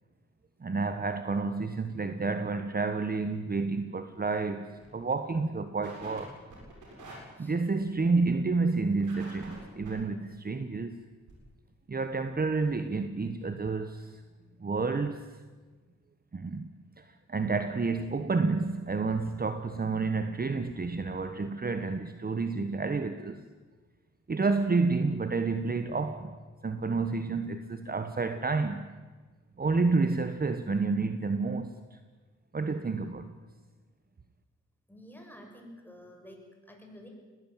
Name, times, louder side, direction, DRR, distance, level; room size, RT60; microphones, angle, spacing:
voice 1, 0.6-4.7 4.9-6.4 7.4-11.0 11.9-14.2 14.6-15.2 16.3-16.7 17.0-23.4 24.3-26.4 26.6-28.9 29.6-32.0 32.5-33.3, right 4 dB, 30° right, 9 dB, 1.3 m, -30 dB
sound 1, 4.1-4.3 4.7-4.9 5.2-5.3 5.8-6.2 6.5-7.2 9.0-9.9 11.3-11.4 12.0-12.1 12.3-12.4 12.6-12.7, right 2 dB, 85° right, 7.3 m, -47 dB
voice 2, 34.9-37.1, equal, 5° left, 1 dB, 6.9 m, -50 dB
20.5 x 18.0 x 9.1 m, 1.3 s
cardioid pair, 70°, 29 cm